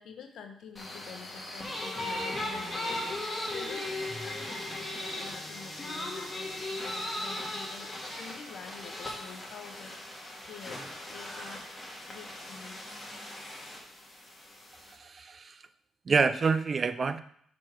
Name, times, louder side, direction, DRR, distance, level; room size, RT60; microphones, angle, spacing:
voice 1, 0.0-3.2 3.5-9.9 10.5-10.8 11.1-11.7 12.1-12.8, left 6 dB, 70° left, 5 dB, 1.1 m, -47 dB
sound 1, 0.8-14.9, left 1 dB, 15° left, 1.9 m, -38 dB
voice 2, 15.0-15.6 16.1-17.2, right 5 dB, 35° right, 13 dB, 0.4 m, -27 dB
5.9 x 4.5 x 6.2 m, 0.65 s
cardioid pair, 105°, 0 cm